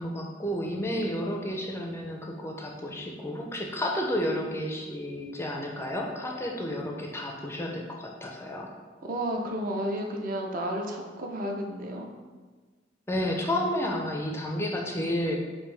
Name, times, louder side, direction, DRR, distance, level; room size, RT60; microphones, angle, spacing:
voice 1, 0.0-8.7 13.1-15.4, left 1 dB, 15° left, 0 dB, 0.4 m, -31 dB
voice 2, 9.0-12.1, right 1 dB, 50° right, 2 dB, 0.5 m, -32 dB
5.3 x 2.6 x 3.2 m, 1.4 s
head